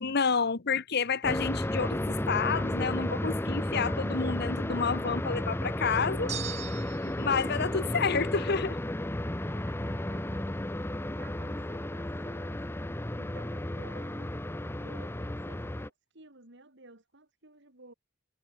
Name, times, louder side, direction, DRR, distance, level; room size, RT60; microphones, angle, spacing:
voice 1, 0.0-6.3 7.2-8.8, left 5 dB, 55° left, 1.1 m, -29 dB
sound 1, 1.2-15.9, left 1 dB, 10° left, 0.8 m, -33 dB
sound 2, 6.3-7.3, right 10 dB, 35° right, 0.5 m, -39 dB
voice 2, 9.4-10.5 11.2-17.9, right 2 dB, 65° right, 4.5 m, -55 dB
head